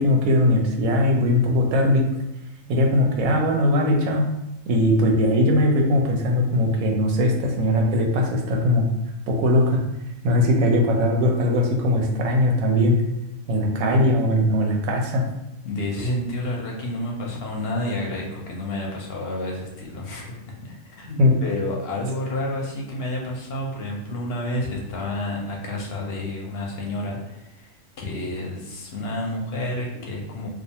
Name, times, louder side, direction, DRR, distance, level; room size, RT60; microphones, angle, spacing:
voice 1, 0.0-2.0 2.7-4.3 4.7-8.9 9.3-9.8 10.2-13.0 13.5-15.2 21.2-21.3, left 1 dB, 90° right, 1 dB, 1.0 m, -20 dB
voice 2, 13.6-14.0 15.6-20.4 20.7-30.5, left 1 dB, 60° left, -2 dB, 0.7 m, -30 dB
2.4 x 2.2 x 2.8 m, 0.91 s
omnidirectional pair, 1.4 m